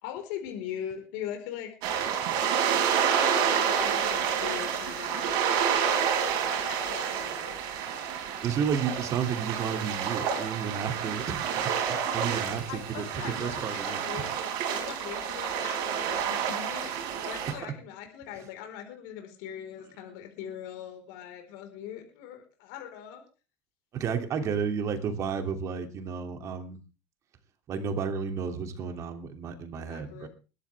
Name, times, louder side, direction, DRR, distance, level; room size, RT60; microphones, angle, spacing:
voice 1, 0.0-1.7 3.0-5.5 6.4-7.6 12.1-12.2 12.6-14.3 14.7-23.2 29.9-30.3, left 10 dB, 70° left, 4 dB, 4.5 m, -41 dB
sound 1, 1.8-17.5, right 8 dB, 55° right, 5.1 m, -29 dB
voice 2, 8.4-14.0 17.5-17.7 23.9-26.8 27.7-30.3, right 7 dB, 35° right, 6 dB, 2.7 m, -32 dB
22.0 x 12.0 x 3.5 m, 0.34 s
cardioid pair, 150°, 9 cm